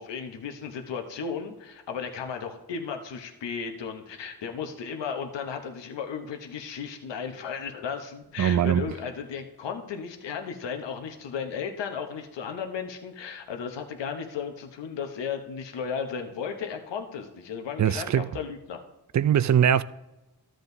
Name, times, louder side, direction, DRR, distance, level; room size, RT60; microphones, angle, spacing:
voice 1, 0.0-18.8, left 6 dB, 80° left, 0.9 m, -35 dB
voice 2, 8.4-8.9 17.8-18.3 19.1-19.8, right 9 dB, 45° right, 0.4 m, -21 dB
13.5 x 7.6 x 2.7 m
cardioid pair, 45°, 43 cm